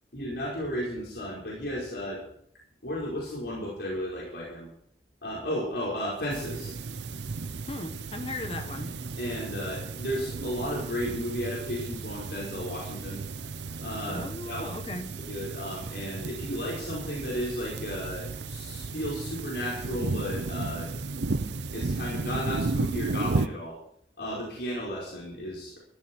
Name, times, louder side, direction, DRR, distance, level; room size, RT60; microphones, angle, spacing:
voice 1, 0.1-2.2 2.8-4.7 5.2-6.7 9.1-13.2 13.8-14.7 15.2-20.9 21.7-23.8 24.2-25.8, equal, 80° left, -5 dB, 5.1 m, -34 dB
sound 1, 6.3-23.5, right 3 dB, 85° right, 0.7 m, -34 dB
voice 2, 7.7-8.9 14.1-15.1, left 2 dB, 30° left, 7 dB, 1.3 m, -37 dB
15.5 x 13.0 x 4.6 m, 0.68 s
head